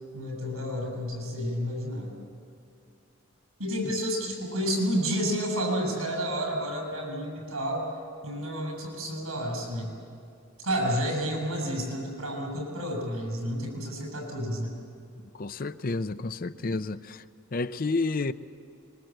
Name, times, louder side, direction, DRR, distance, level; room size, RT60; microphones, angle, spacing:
voice 1, 0.1-2.1 3.6-7.9 8.2-9.9 10.6-14.7, equal, 85° right, 7.9 m, -30 dB
voice 2, 15.3-17.2 17.5-18.3, left 3 dB, 40° left, 0.6 m, -30 dB
25.5 x 22.5 x 7.9 m
head